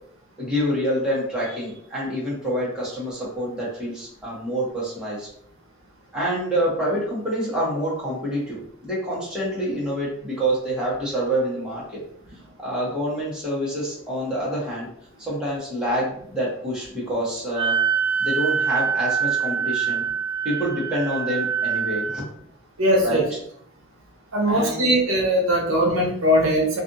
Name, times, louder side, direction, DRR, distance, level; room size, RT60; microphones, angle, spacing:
voice 1, 0.4-5.3 6.1-12.0 12.6-14.9 15.2-17.8 18.2-20.1 20.4-22.2 23.0-23.2 24.5-25.0, equal, 5° right, -7 dB, 0.9 m, -27 dB
Wind instrument woodwind instrument, 17.5-22.2, right 6 dB, 25° right, 0.3 m, -24 dB
voice 2, 22.8-23.2 24.3-26.8, equal, 70° right, -1 dB, 0.7 m, -20 dB
2.5 x 2.4 x 2.6 m, 0.65 s
head